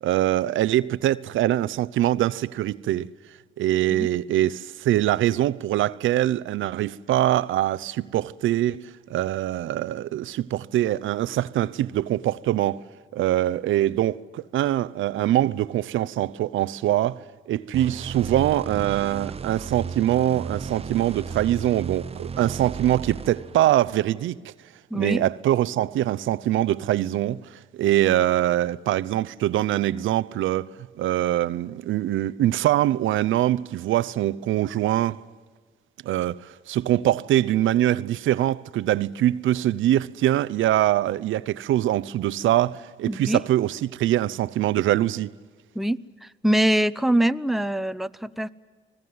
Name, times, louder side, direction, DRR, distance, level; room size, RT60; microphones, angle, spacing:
voice 1, 0.0-3.1 3.6-8.8 9.1-12.8 13.1-24.5 24.9-27.4 27.7-30.7 31.0-35.2 36.0-45.3, right 13 dB, 80° right, 0.7 m, -23 dB
sound 1, 17.7-24.2, right 6 dB, 30° right, 0.8 m, -35 dB
voice 2, 24.9-25.2 43.1-43.4 45.7-48.5, right 1 dB, ahead, 0.8 m, -24 dB
30.0 x 20.0 x 9.6 m
cardioid pair, 90°, 20 cm